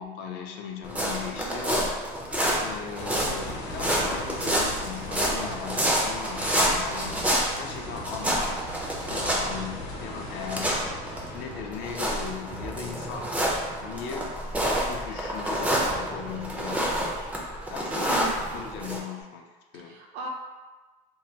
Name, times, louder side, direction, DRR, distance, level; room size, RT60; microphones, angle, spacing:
voice 1, 0.0-1.9 2.6-7.2 7.5-8.6 9.1-10.8 11.3-13.4 13.8-14.4 14.9-17.4 17.7-19.4 19.7-20.0, left 6 dB, 65° left, 3 dB, 0.4 m, -38 dB
sound 1, 0.8-19.0, equal, 5° right, 0.4 m, -28 dB
sound 2, 3.0-15.3 15.8-15.9 19.2-19.3, left 1 dB, 85° left, 0.9 m, -40 dB
voice 2, 18.1-18.4 19.7-20.3, right 3 dB, 75° right, 1 dB, 0.5 m, -37 dB
3.1 x 2.1 x 2.7 m, 1.3 s
cardioid pair, 150°, 20 cm